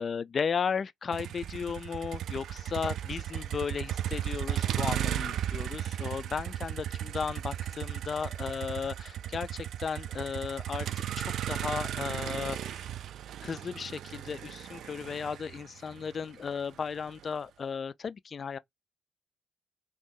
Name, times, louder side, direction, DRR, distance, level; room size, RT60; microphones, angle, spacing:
voice 1, 0.0-10.9 11.2-12.9 13.4-18.6, left 6 dB, 45° left, 0.3 m, -35 dB
Motor vehicle (road), 1.1-17.2, right 11 dB, 75° right, 0.3 m, -36 dB
3.0 x 2.6 x 3.7 m
cardioid pair, 90°, 0 cm